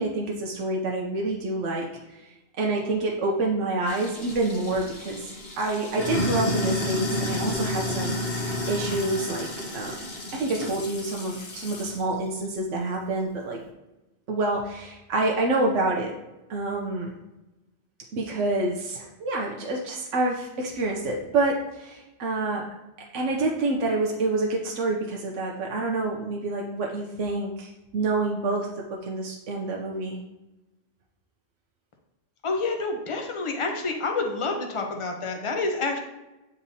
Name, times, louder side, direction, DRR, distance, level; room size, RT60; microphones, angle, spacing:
voice 1, 0.0-2.2 2.6-5.3 5.6-10.0 10.3-13.6 14.3-16.1 16.5-17.1 18.1-22.7 23.1-30.2, right 2 dB, 85° right, -1 dB, 1.1 m, -27 dB
Sink (filling or washing), 3.9-12.0, left 1 dB, 55° left, 1.3 m, -31 dB
voice 2, 32.4-36.0, left 3 dB, 30° left, 3 dB, 0.7 m, -28 dB
8.7 x 4.0 x 2.7 m, 1.0 s
omnidirectional pair, 1.2 m